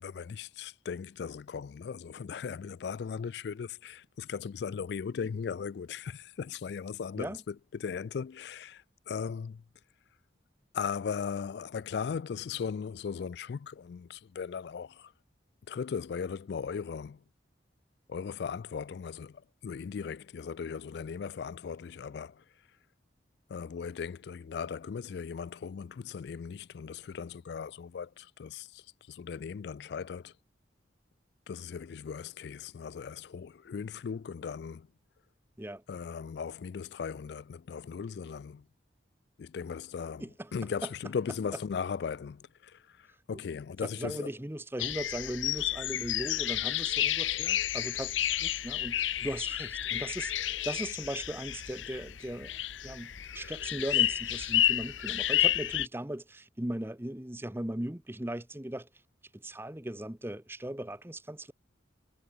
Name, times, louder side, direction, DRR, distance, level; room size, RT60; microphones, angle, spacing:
voice 1, 0.0-9.6 10.7-15.1 15.7-17.2 18.1-22.4 23.5-30.3 31.5-34.9 35.9-38.7 39.4-40.3 40.5-44.3, left 6 dB, 60° left, 0.3 m, -38 dB
voice 2, 40.2-40.5 40.8-40.9 44.0-50.3 50.6-58.9 59.3-61.5, right 1 dB, 10° right, 0.9 m, -38 dB
sound 1, 44.8-55.9, left 12 dB, 90° left, 0.7 m, -31 dB
head